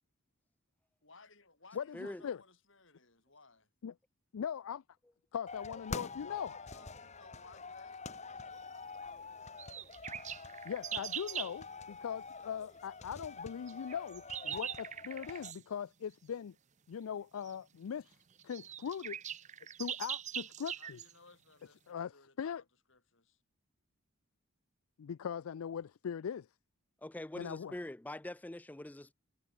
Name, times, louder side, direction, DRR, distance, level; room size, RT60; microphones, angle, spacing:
voice 1, 1.0-3.7 6.3-8.5 20.8-23.4, left 3 dB, 60° left, 7.0 m, -61 dB
voice 2, 4.3-4.8 5.3-6.5 10.6-16.5 16.9-18.1 18.4-19.2 19.8-21.0 21.9-22.1 22.4-22.6 25.0-26.5 27.4-27.8, left 7 dB, 90° left, 0.4 m, -40 dB
sound 1, 5.5-15.5, left 4 dB, 35° left, 1.8 m, -47 dB
sound 2, 9.6-11.6 13.7-15.6 17.5-17.6 18.1-18.2 18.4-21.1, right 9 dB, 35° right, 0.7 m, -42 dB
voice 3, 27.0-29.1, left 1 dB, 10° left, 0.3 m, -44 dB
head